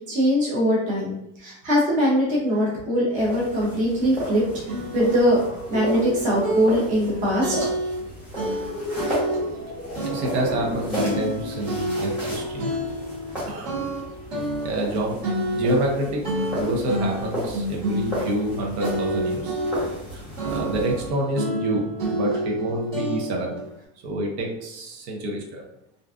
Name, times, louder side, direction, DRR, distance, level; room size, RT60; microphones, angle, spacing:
voice 1, 0.1-4.4 4.9-5.4 5.7-7.7, equal, 20° right, -5 dB, 0.6 m, -22 dB
sound 1, 3.1-21.1, equal, 5° right, 0.9 m, -35 dB
sound 2, 4.0-13.6, left 1 dB, 20° left, 0.6 m, -38 dB
sound 3, 4.0-4.1 4.7-5.4 5.7-8.1 8.4-9.7 9.9-13.4 13.6-18.5 18.8-20.1 20.4-23.6, equal, 50° right, 1.1 m, -29 dB
voice 2, 10.0-12.7 13.5-13.8 14.6-15.2 15.5-16.2 16.5-19.6 20.1-23.5 24.0-25.6, right 1 dB, 65° right, -1 dB, 0.7 m, -27 dB
2.5 x 2.2 x 2.4 m, 0.84 s
supercardioid pair, 170°, 37 cm